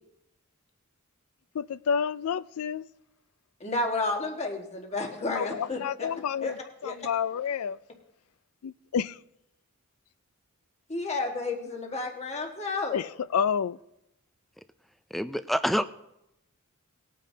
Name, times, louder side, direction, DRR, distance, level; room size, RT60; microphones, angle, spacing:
voice 1, 1.5-2.8 5.3-7.8 8.6-9.2 12.9-13.8, left 7 dB, 75° left, 0.4 m, -29 dB
voice 2, 3.6-6.1 6.4-6.5 6.8-6.9 10.9-13.0, left 2 dB, 30° left, 1.5 m, -31 dB
voice 3, 15.1-15.9, equal, ahead, 0.3 m, -27 dB
19.5 x 9.2 x 2.8 m
head